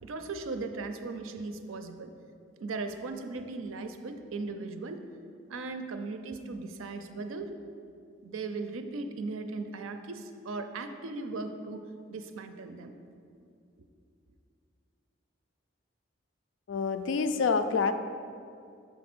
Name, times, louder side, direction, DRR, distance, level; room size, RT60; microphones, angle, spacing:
voice 1, 0.0-2.1 2.6-5.1 5.5-7.5 8.2-11.8 12.1-12.9, right 3 dB, 85° right, 8 dB, 0.5 m, -38 dB
voice 2, 16.7-17.9, left 5 dB, 70° left, 10 dB, 0.4 m, -27 dB
6.4 x 4.1 x 6.0 m, 2.4 s
head